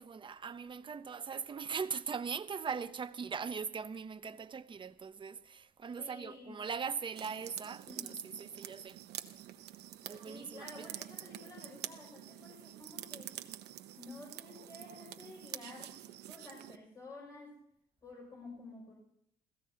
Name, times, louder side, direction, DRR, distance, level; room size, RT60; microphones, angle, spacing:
voice 1, 0.0-9.0 10.1-10.9, right 6 dB, 30° right, 0.8 m, -40 dB
voice 2, 6.0-6.6 7.9-8.3 10.2-13.4 13.9-17.6 18.0-18.9, left 2 dB, 25° left, 5.9 m, -51 dB
sound 1, 7.2-16.8, right 13 dB, 80° right, 1.0 m, -47 dB
27.0 x 16.5 x 2.9 m
cardioid pair, 110°, 17 cm